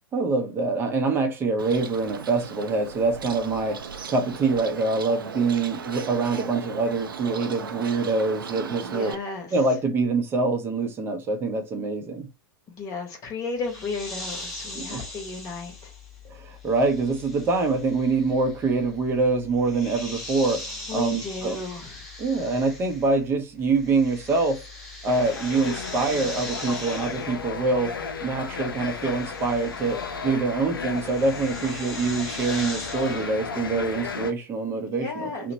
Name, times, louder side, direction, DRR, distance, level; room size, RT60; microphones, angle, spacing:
voice 1, 0.1-3.8 4.1-9.1 9.5-12.3 14.7-15.0 16.3-20.6 20.9-21.6 22.2-24.6 25.0-27.9 28.2-35.5, right 3 dB, 20° right, 0.6 m, -25 dB
Bird, 1.6-9.1, right 6 dB, 70° right, 0.4 m, -37 dB
voice 2, 8.8-9.5 12.7-15.9 20.9-22.1 34.9-35.5, left 4 dB, 30° left, 1.0 m, -34 dB
sound 1, 13.6-23.3 23.6-33.3, left 2 dB, ahead, 1.0 m, -40 dB
sound 2, 25.1-34.3, left 5 dB, 70° left, 0.5 m, -34 dB
2.8 x 2.1 x 2.7 m
figure-of-eight pair, 100°, 12 cm